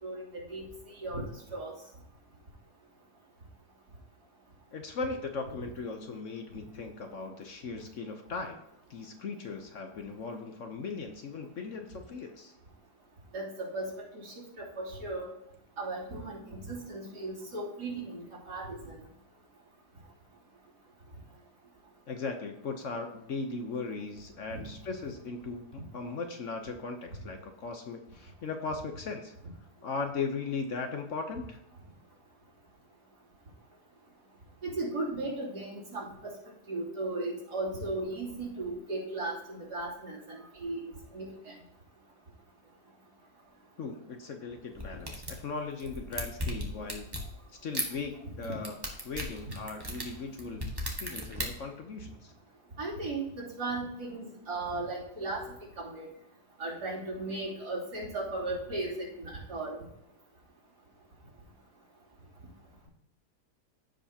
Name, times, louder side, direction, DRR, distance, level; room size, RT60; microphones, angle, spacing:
voice 1, 0.0-1.2 1.5-1.7 5.6-5.7 13.3-13.9 14.1-15.3 15.8-19.0 24.5-24.6 34.6-36.3 36.7-41.5 48.2-48.3 52.8-55.4 55.8-56.1 56.6-59.8, right 2 dB, 75° right, -6 dB, 3.6 m, -36 dB
voice 2, 4.7-8.6 8.9-12.5 22.1-29.3 29.8-31.6 43.8-47.1 47.6-48.8 49.0-50.7 51.0-52.3, left 4 dB, 55° left, 5 dB, 1.0 m, -38 dB
sound 1, 44.7-45.4 45.8-47.3 47.7-47.9 48.4-51.4, equal, 15° right, 1.3 m, -35 dB
15.5 x 5.2 x 2.8 m, 0.83 s
omnidirectional pair, 1.8 m